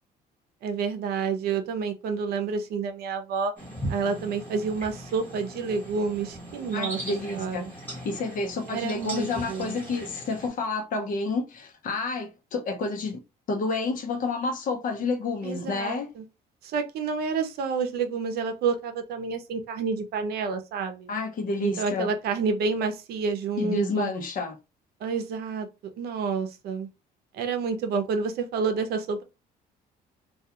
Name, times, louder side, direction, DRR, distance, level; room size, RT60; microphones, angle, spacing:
voice 1, 0.6-3.5 3.9-7.0 7.3-7.7 8.7-9.8 15.4-16.2 16.6-21.1 21.6-24.1 25.0-25.7 26.0-26.9 27.3-29.2, right 5 dB, 70° right, 0.6 m, -29 dB
sound 1, 3.6-10.5, right 1 dB, 10° left, 1.0 m, -39 dB
voice 2, 6.7-13.2 13.5-16.1 21.1-22.1 23.6-24.6, left 3 dB, 55° left, 0.7 m, -30 dB
2.3 x 2.3 x 2.8 m
cardioid pair, 110°, 17 cm